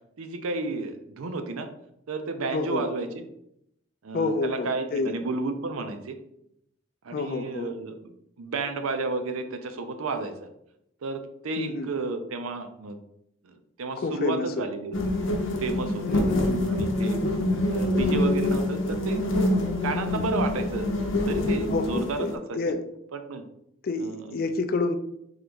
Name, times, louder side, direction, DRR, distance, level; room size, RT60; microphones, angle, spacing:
voice 1, 0.2-1.7 2.1-3.2 4.0-6.2 7.0-10.5 11.0-13.0 13.4-15.3 15.6-16.3 16.6-17.2 17.7-19.2 19.8-20.9 21.3-22.7 23.1-23.4 24.0-24.4, right 3 dB, 85° right, 7 dB, 0.5 m, -32 dB
voice 2, 2.5-2.9 4.1-5.1 7.1-7.8 11.6-11.9 14.0-14.6 16.1-16.6 21.7-22.8 23.8-25.0, left 3 dB, 45° left, 8 dB, 0.3 m, -29 dB
sound 1, 14.9-22.3, left 1 dB, 65° left, 0.7 m, -25 dB
3.8 x 2.9 x 3.4 m, 0.76 s
head